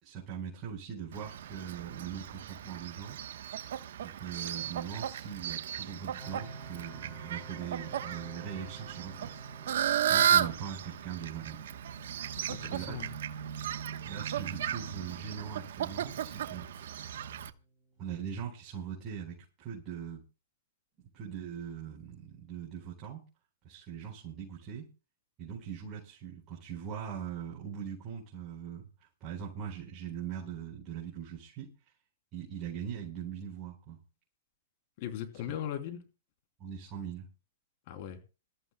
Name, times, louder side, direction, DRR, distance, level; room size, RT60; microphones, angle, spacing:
voice 1, 0.0-3.2 4.0-9.4 10.1-11.6 12.5-13.1 14.0-16.6 18.0-20.2 21.1-23.2 23.6-24.9 25.4-31.7 32.3-34.0 36.6-37.3, right 8 dB, 30° right, 4.4 m, -41 dB
Fowl, 1.1-17.5, right 9 dB, 70° right, 1.0 m, -34 dB
sound 1, 6.2-19.0, right 1 dB, 5° left, 6.7 m, -55 dB
voice 2, 12.4-13.1 35.0-36.0 37.9-38.2, left 10 dB, 50° left, 3.0 m, -39 dB
26.5 x 14.0 x 2.2 m
hypercardioid pair, 140°, 0 cm